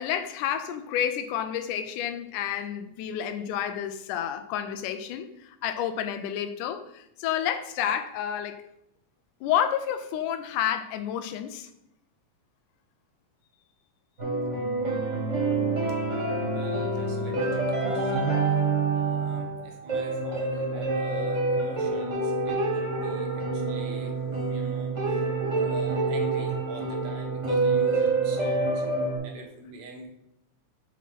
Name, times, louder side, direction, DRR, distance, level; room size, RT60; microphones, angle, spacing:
voice 1, 0.0-8.6 9.4-11.7, left 9 dB, 90° left, 9 dB, 2.2 m, -30 dB
sound 1, 14.2-29.2, right 3 dB, 30° right, 1.6 m, -27 dB
voice 2, 16.5-18.5 18.9-24.1 24.5-25.3 25.5-28.9 29.2-30.1, right 3 dB, 65° right, 1 dB, 2.2 m, -45 dB
6.1 x 4.2 x 5.7 m, 0.78 s
omnidirectional pair, 3.6 m